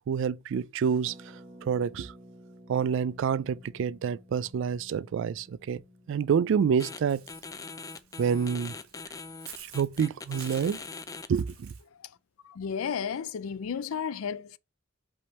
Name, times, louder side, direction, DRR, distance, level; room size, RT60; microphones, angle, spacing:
voice 1, 0.1-1.1 1.6-2.1 2.7-5.8 6.1-7.2 8.2-8.7 9.7-10.8 11.3-11.7, right 7 dB, 60° right, 0.3 m, -27 dB
Harp, 1.0-10.6 10.9-11.0 11.2-11.5, equal, 10° right, 1.1 m, -55 dB
sound 1, 6.8-7.0 7.3-11.3, left 4 dB, 15° left, 0.4 m, -41 dB
Walk footsteps / Bird, 7.1-11.8, right 8 dB, 85° right, 1.3 m, -50 dB
voice 2, 12.4-14.6, left 7 dB, 75° left, 0.4 m, -33 dB
5.4 x 3.5 x 5.3 m
head